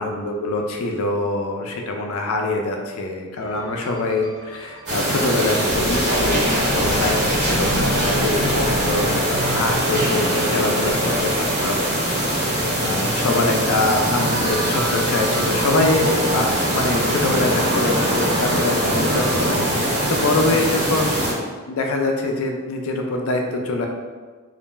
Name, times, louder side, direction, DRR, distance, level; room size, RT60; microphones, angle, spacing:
voice 1, 0.0-6.4 6.7-11.9 12.5-21.1 21.7-23.9, left 2 dB, 65° left, 2 dB, 0.4 m, -24 dB
sound 1, 3.4-20.1, right 1 dB, 10° right, 0.9 m, -35 dB
sound 2, 4.9-21.3, right 1 dB, 50° right, 1.1 m, -22 dB
sound 3, 5.7-9.9, left 1 dB, 70° right, 0.8 m, -32 dB
2.5 x 2.2 x 3.0 m, 1.4 s
head